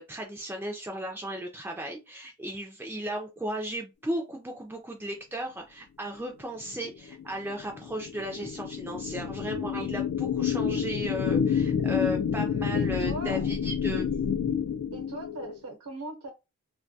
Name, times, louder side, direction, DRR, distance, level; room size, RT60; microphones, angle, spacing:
voice 1, 0.0-14.1, equal, 10° right, 0.3 m, -35 dB
sound 1, 6.8-15.6, left 7 dB, 90° left, 0.3 m, -29 dB
voice 2, 12.7-13.5 14.9-16.3, right 2 dB, 85° right, 0.7 m, -39 dB
2.2 x 2.2 x 2.6 m
head